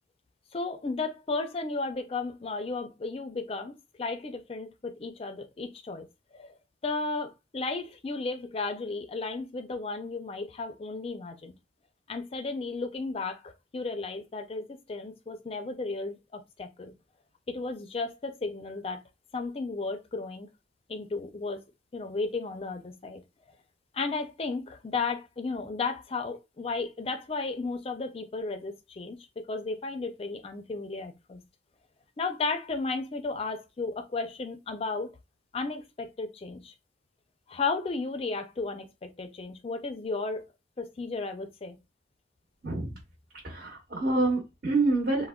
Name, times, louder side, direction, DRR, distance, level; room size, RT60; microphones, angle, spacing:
voice 1, 0.5-6.1 6.3-6.6 6.8-11.5 12.1-16.9 17.5-19.0 19.3-20.5 20.9-21.6 21.9-23.2 23.9-31.4 32.2-35.1 35.5-36.7 37.5-40.4 40.8-41.8, left 3 dB, 30° left, 0.4 m, -34 dB
voice 2, 42.6-43.0 43.4-45.3, right 2 dB, 55° right, 0.9 m, -27 dB
3.5 x 2.1 x 2.2 m
head